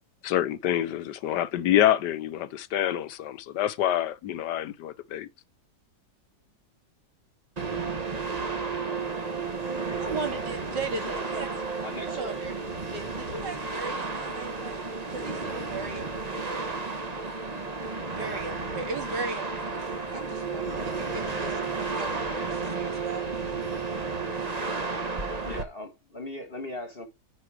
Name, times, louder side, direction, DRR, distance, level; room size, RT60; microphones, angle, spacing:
voice 1, 0.2-5.3, left 12 dB, 75° left, 1.3 m, -26 dB
sound 1, 7.6-25.6, right 4 dB, 25° right, 1.1 m, -32 dB
voice 2, 10.0-11.6 12.1-12.5 12.9-16.7 18.1-23.3, right 4 dB, 75° right, 2.6 m, -37 dB
voice 3, 11.8-12.4 25.4-27.1, left 1 dB, 35° left, 1.5 m, -38 dB
9.7 x 4.8 x 4.8 m
omnidirectional pair, 1.9 m